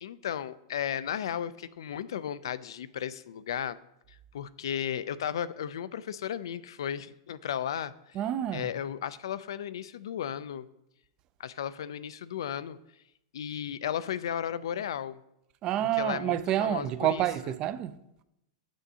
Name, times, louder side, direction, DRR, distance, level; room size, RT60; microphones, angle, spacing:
voice 1, 0.0-3.8 4.3-8.2 8.5-10.7 11.4-12.8 13.3-15.2 15.9-17.5, left 9 dB, 85° left, 0.3 m, -34 dB
voice 2, 8.1-8.7 15.6-18.0, right 12 dB, 30° right, 0.3 m, -28 dB
7.8 x 6.2 x 2.8 m
supercardioid pair, 145°, 2 cm